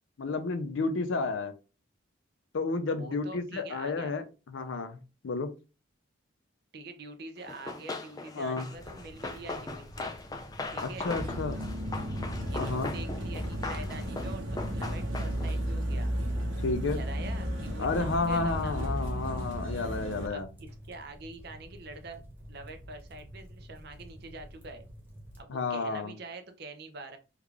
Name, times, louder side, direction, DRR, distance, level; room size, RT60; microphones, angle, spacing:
voice 1, 0.2-1.5 2.5-4.2 4.5-5.5 8.4-8.7 10.8-11.6 12.6-12.9 16.6-17.0 17.8-20.5 25.5-26.1, left 3 dB, 75° left, 9 dB, 0.5 m, -31 dB
voice 2, 2.9-4.1 6.7-10.2 10.7-11.1 12.5-16.2 16.9-18.8 20.3-22.2 22.5-24.8 25.4-27.2, right 2 dB, 55° right, 7 dB, 0.5 m, -45 dB
Run, 7.5-15.6, left 3 dB, 20° left, 0.4 m, -40 dB
sound 1, 8.7-25.4, equal, 10° right, 0.8 m, -50 dB
sound 2, 11.1-20.3, equal, 80° right, 0.9 m, -34 dB
3.5 x 2.4 x 3.2 m, 0.31 s
head